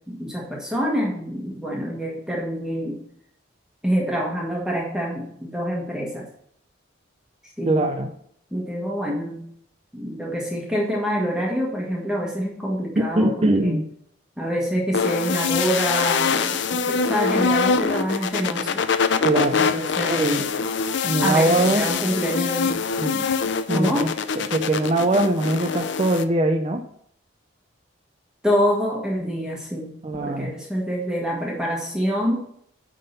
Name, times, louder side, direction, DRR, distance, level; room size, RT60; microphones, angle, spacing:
voice 1, 0.1-3.0 3.8-6.3 7.6-7.9 8.5-9.4 9.9-13.8 14.4-18.8 19.6-20.5 21.2-22.8 23.7-24.1 28.4-29.9 30.2-32.3, equal, 5° right, -3 dB, 1.4 m, -26 dB
voice 2, 7.7-8.1 13.0-13.9 19.2-19.7 20.0-20.4 21.0-21.9 23.0-23.3 23.7-24.1 24.5-26.8 30.0-30.5, right 1 dB, 30° right, 3 dB, 0.5 m, -22 dB
sound 1, 14.9-26.2, left 5 dB, 60° left, 0.5 m, -24 dB
9.4 x 3.8 x 6.6 m, 0.67 s
head